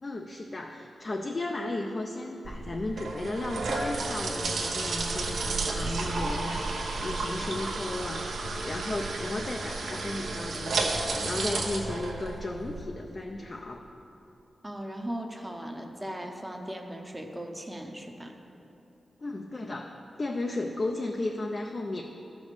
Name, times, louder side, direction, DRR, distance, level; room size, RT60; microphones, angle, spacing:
voice 1, 0.0-13.9 19.2-19.9 20.2-22.0, left 2 dB, 30° left, 2 dB, 0.5 m, -35 dB
sound 1, 2.4-12.8, right 3 dB, 80° right, 1.0 m, -32 dB
voice 2, 14.6-18.3, right 1 dB, 10° right, 4 dB, 0.7 m, -38 dB
12.5 x 5.3 x 6.6 m, 3.0 s
wide cardioid pair, 145°, 0 cm